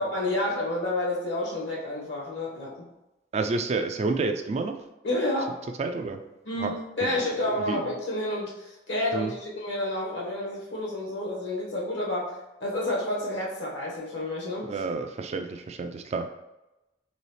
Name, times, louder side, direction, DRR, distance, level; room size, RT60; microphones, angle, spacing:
voice 1, 0.0-2.9 5.0-5.5 6.4-14.7, left 1 dB, 75° left, -4 dB, 1.5 m, -30 dB
voice 2, 3.3-4.8 5.8-6.2 6.6-6.7 7.0-7.1 7.4-7.8 9.1-9.3 14.6-16.3, right 3 dB, 35° right, 7 dB, 0.3 m, -29 dB
4.2 x 3.1 x 3.1 m, 0.96 s
head